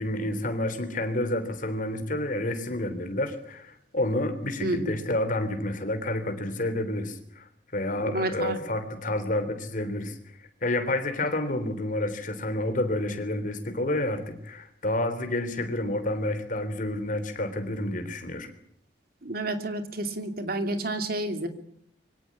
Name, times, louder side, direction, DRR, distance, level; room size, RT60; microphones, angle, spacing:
voice 1, 0.0-7.5 7.7-10.2 10.6-18.5, left 1 dB, 50° left, 9 dB, 3.4 m, -29 dB
voice 2, 4.6-4.9 8.0-8.6 19.2-21.5, right 1 dB, 60° right, 7 dB, 2.7 m, -30 dB
24.0 x 17.5 x 8.5 m, 0.69 s
head